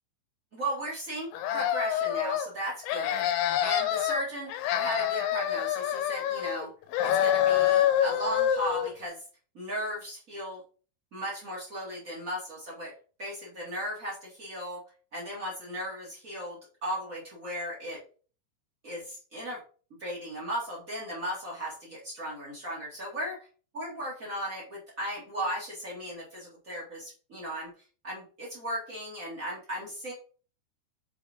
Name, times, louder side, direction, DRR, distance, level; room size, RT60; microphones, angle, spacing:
voice 1, 0.5-3.3 3.6-6.7 7.0-9.2 9.5-10.6 11.1-12.9 13.2-14.8 15.1-18.0 18.8-19.6 20.0-23.5 23.7-27.7 28.0-30.1, equal, 55° right, -5 dB, 0.9 m, -36 dB
sound 1, 1.3-2.5 2.8-4.2 4.5-6.7 6.9-8.9, left 10 dB, 85° left, 3.2 m, -26 dB
6.9 x 4.9 x 3.5 m, 0.40 s
omnidirectional pair, 5.3 m